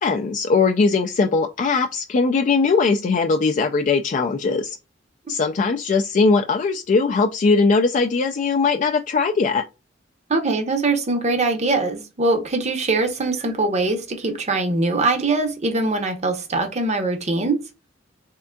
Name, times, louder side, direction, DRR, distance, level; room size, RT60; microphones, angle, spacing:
voice 1, 0.0-4.8 5.3-9.6, left 4 dB, 40° left, 0.3 m, -20 dB
voice 2, 10.3-17.6, right 3 dB, 35° right, 0.7 m, -22 dB
3.6 x 3.4 x 2.2 m
head